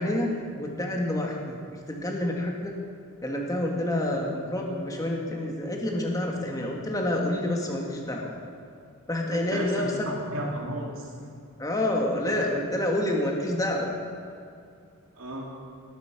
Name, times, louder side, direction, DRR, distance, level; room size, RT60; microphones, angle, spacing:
voice 1, 0.0-1.6 1.9-2.7 3.2-8.4 9.1-9.9 11.6-13.9, left 1 dB, 15° left, 0 dB, 1.9 m, -28 dB
voice 2, 9.3-11.1 15.2-15.5, right 1 dB, 65° right, -2 dB, 2.8 m, -34 dB
19.0 x 8.5 x 6.0 m, 2.4 s
head